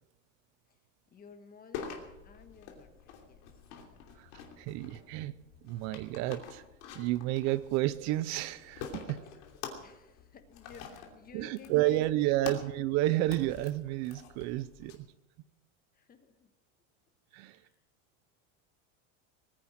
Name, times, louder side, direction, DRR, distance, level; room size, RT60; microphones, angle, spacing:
voice 1, 1.1-3.9 9.2-9.3 9.8-12.4 15.9-16.5 17.3-17.8, left 6 dB, 25° left, 9 dB, 1.4 m, -55 dB
sound 1, 1.7-14.9, left 7 dB, 65° left, 3.0 m, -47 dB
voice 2, 4.1-6.6 6.9-9.2 11.3-15.1 17.3-17.6, right 16 dB, 45° right, 16 dB, 0.6 m, -31 dB
20.0 x 10.0 x 6.3 m, 0.99 s
supercardioid pair, 145°, 37 cm